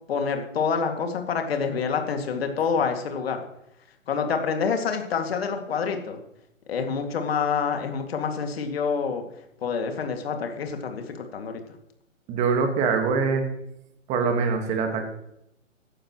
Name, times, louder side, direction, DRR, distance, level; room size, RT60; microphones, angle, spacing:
voice 1, 0.1-3.4 4.1-6.2 6.7-9.2 9.6-11.5, left 6 dB, 50° left, 5 dB, 2.3 m, -27 dB
voice 2, 12.3-13.5 14.1-15.1, right 5 dB, 15° right, 5 dB, 1.6 m, -23 dB
16.5 x 11.5 x 3.1 m, 0.79 s
figure-of-eight pair, 135°, 39 cm